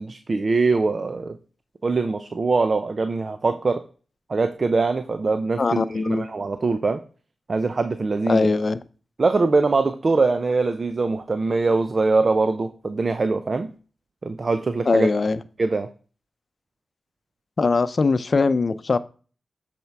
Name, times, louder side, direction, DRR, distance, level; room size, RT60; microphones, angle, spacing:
voice 1, 0.0-1.4 1.8-3.8 4.3-7.0 7.5-8.4 9.2-13.7 14.2-15.1 15.6-15.9, right 3 dB, 50° right, 0.6 m, -22 dB
voice 2, 5.6-6.2 8.3-8.8 14.9-15.4 17.6-19.0, left 3 dB, 55° left, 0.6 m, -21 dB
8.1 x 4.4 x 4.7 m
cardioid pair, 45°, 0 cm